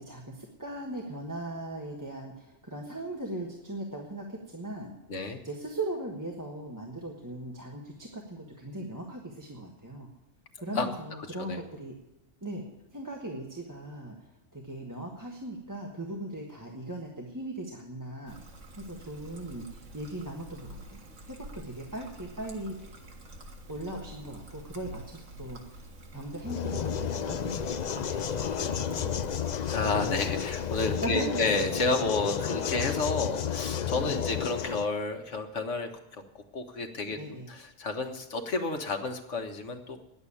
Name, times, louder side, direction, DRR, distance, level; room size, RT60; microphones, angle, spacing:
voice 1, 0.0-10.1 10.6-11.9 12.4-12.6 12.9-18.4 18.8-23.0 23.7-25.8 26.1-28.2 28.6-29.2 31.0-31.4 32.5-32.6 37.1-37.5, right 1 dB, 15° right, -1 dB, 1.4 m, -39 dB
voice 2, 5.1-5.4 10.7-10.9 11.5-11.6 29.7-35.9 36.5-40.0, left 3 dB, 75° left, 5 dB, 1.6 m, -31 dB
Trickle dribble, 18.3-31.0, right 1 dB, 80° right, 2.0 m, -47 dB
sound 1, 26.4-34.9, left 8 dB, 55° left, 0.5 m, -32 dB
10.5 x 8.2 x 9.8 m, 0.89 s
omnidirectional pair, 1.3 m